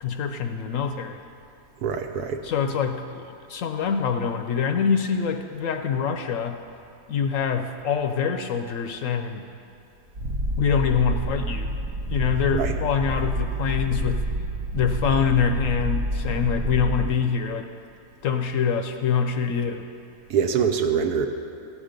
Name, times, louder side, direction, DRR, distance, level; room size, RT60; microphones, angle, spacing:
voice 1, 0.0-1.2 2.4-6.6 7.1-9.4 10.6-11.7 12.1-14.3 14.7-17.7 18.2-19.9, left 6 dB, 65° left, 6 dB, 0.9 m, -25 dB
voice 2, 1.8-2.4 12.5-12.7 20.3-21.3, right 7 dB, 80° right, 5 dB, 1.3 m, -24 dB
Purr, 10.1-17.1, right 1 dB, 60° right, 1.0 m, -28 dB
15.5 x 7.3 x 5.1 m, 2.5 s
omnidirectional pair, 1.7 m